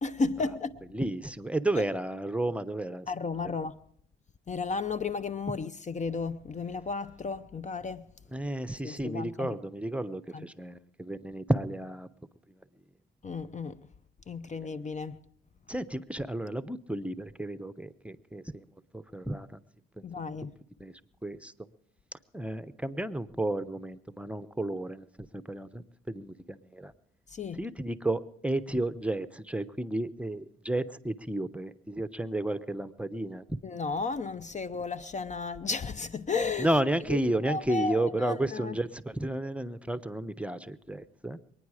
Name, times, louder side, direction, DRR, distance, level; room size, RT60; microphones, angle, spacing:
voice 1, 0.0-0.8 3.1-3.8 4.5-8.1 8.8-9.6 10.3-10.5 13.2-13.8 14.3-15.2 20.0-20.5 27.3-27.6 33.6-36.7 37.1-37.2 37.4-38.8, left 4 dB, 35° left, 0.7 m, -33 dB
voice 2, 0.9-3.1 8.3-12.1 15.7-18.6 18.9-19.5 20.8-20.9 21.2-21.5 22.3-25.1 25.3-26.9 27.5-33.4 36.6-41.4, right 1 dB, 5° right, 0.8 m, -32 dB
23.0 x 9.8 x 4.9 m
supercardioid pair, 55°, 21 cm